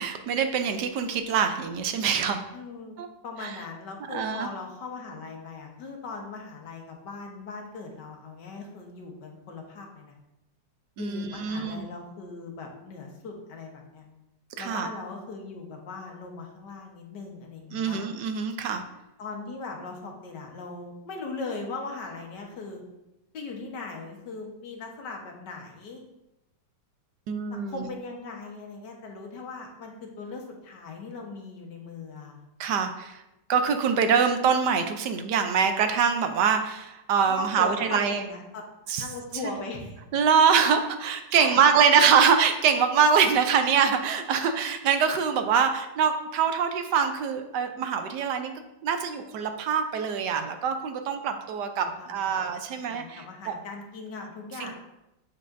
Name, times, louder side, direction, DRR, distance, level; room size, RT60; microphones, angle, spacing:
voice 1, 0.0-2.4 3.0-3.1 3.4-3.5 4.1-4.5 11.0-11.9 14.6-14.9 17.7-18.8 27.3-27.7 32.6-33.2 33.5-38.2 38.9-39.0 39.4-39.5 40.1-48.5 48.8-53.5 54.6-54.7, right 6 dB, 75° right, 7 dB, 1.2 m, -24 dB
voice 2, 2.5-3.0 3.2-10.2 11.0-14.1 14.6-18.0 19.2-22.8 23.3-26.0 27.5-32.4 37.3-38.6 39.0-40.0 41.4-41.6 51.7-52.3 52.7-54.7, left 3 dB, 70° left, 1 dB, 1.7 m, -39 dB
7.5 x 7.2 x 2.6 m, 0.93 s
omnidirectional pair, 1.9 m